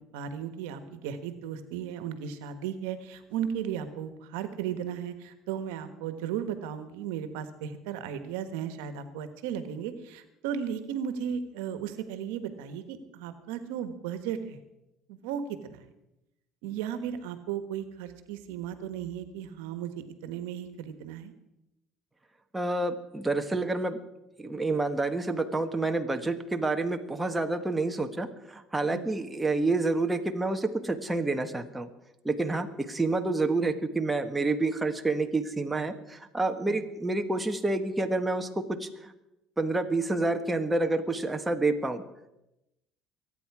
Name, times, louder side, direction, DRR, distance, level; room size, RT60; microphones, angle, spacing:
voice 1, 0.0-14.6 15.1-15.8 16.6-21.3 28.9-29.1 36.7-36.8, right 8 dB, 90° right, 10 dB, 1.3 m, -35 dB
voice 2, 22.5-24.0 24.4-31.9 32.2-39.1 39.6-42.0, right 2 dB, 10° right, 5 dB, 1.3 m, -28 dB
23.5 x 9.3 x 4.8 m, 0.90 s
supercardioid pair, 95°, 0 cm